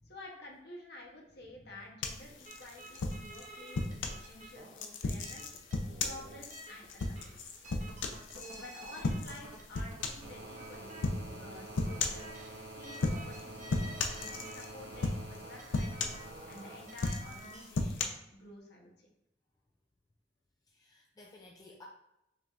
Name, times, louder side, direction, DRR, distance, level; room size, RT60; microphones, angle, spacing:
voice 1, 0.0-5.5 6.0-7.6 8.2-11.0 11.4-15.9 16.5-19.1, left 1 dB, 60° left, 0 dB, 0.8 m, -51 dB
sound 1, 2.0-4.2 4.8-8.6 9.0-9.4 9.7-10.3 11.0-11.3 11.8-12.3 12.9-13.4 13.7-14.7 15.0-15.4 15.7-16.6 16.9-18.0, left 3 dB, 80° left, 0.5 m, -34 dB
sound 2, 2.5-17.7, right 1 dB, 40° right, 0.5 m, -52 dB
sound 3, 6.5-17.0 18.4-18.5, right 1 dB, 90° right, 0.9 m, -49 dB
voice 2, 20.7-21.8, left 2 dB, 20° left, -1 dB, 0.4 m, -57 dB
4.8 x 3.3 x 2.4 m, 0.85 s
head